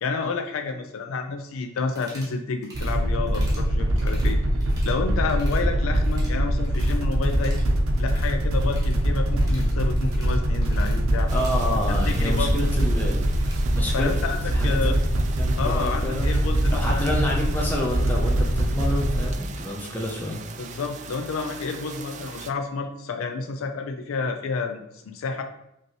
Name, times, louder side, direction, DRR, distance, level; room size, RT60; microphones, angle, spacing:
voice 1, 0.0-4.4 4.8-7.6 8.0-11.3 11.9-12.7 13.9-15.0 15.6-17.0 20.6-25.4, left 4 dB, 85° left, 6 dB, 0.4 m, -30 dB
sound 1, 1.9-2.3 2.6-3.0 3.3-3.6 3.9-5.0 5.2-5.6 5.9-7.0 7.3-13.7, right 1 dB, 20° right, 1.4 m, -47 dB
sound 2, 2.7-19.3, right 1 dB, 90° right, 0.6 m, -23 dB
voice 2, 11.3-13.3 13.7-14.9 15.4-16.3 16.7-20.4, left 1 dB, 10° left, -2 dB, 0.6 m, -29 dB
sound 3, 11.3-22.5, right 6 dB, 35° right, 0.3 m, -42 dB
5.2 x 2.9 x 3.0 m, 0.82 s
head